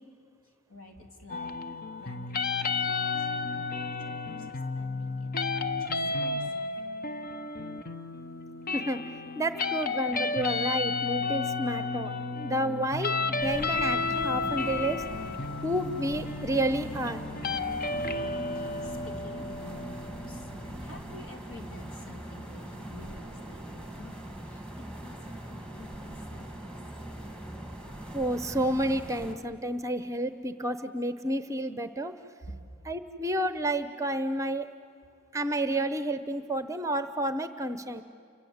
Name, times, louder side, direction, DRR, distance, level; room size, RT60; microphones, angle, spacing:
voice 1, 0.4-6.9 18.5-26.5 32.4-32.7, left 1 dB, 65° left, 3 dB, 3.3 m, -50 dB
sound 1, 1.3-21.2, left 3 dB, 40° left, 0.9 m, -32 dB
voice 2, 8.7-9.1 9.4-15.0 15.6-17.2 28.1-32.2 32.9-34.7 35.3-38.0, right 1 dB, 15° right, 11 dB, 0.8 m, -30 dB
sound 2, 13.4-29.3, right 1 dB, 5° left, 2.4 m, -42 dB
29.5 x 25.0 x 8.0 m, 2.5 s
head